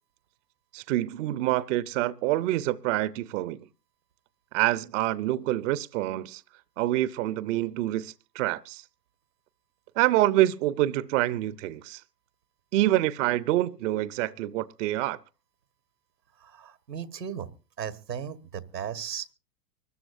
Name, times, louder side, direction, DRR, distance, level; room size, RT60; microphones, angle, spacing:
voice 1, 0.7-3.6 4.5-6.4 6.8-8.8 10.0-12.0 12.7-15.2, right 15 dB, 50° right, 0.7 m, -26 dB
voice 2, 16.4-17.5 17.8-19.3, right 8 dB, 90° right, 1.5 m, -36 dB
25.0 x 13.5 x 2.5 m
hypercardioid pair, 100°, 48 cm